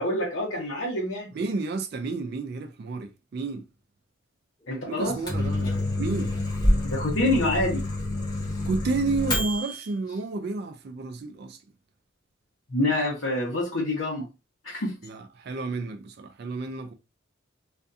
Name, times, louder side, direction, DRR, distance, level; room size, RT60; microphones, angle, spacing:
voice 1, 0.0-1.3 4.7-5.2 6.8-7.8 12.7-14.3 14.6-14.9, left 1 dB, 85° left, 0.9 m, -26 dB
voice 2, 1.3-3.6 4.9-6.4 8.6-11.6 15.0-16.9, right 3 dB, 50° right, 0.3 m, -31 dB
Microwave oven, 5.0-9.8, left 1 dB, 20° left, 0.8 m, -27 dB
2.5 x 2.3 x 2.5 m
head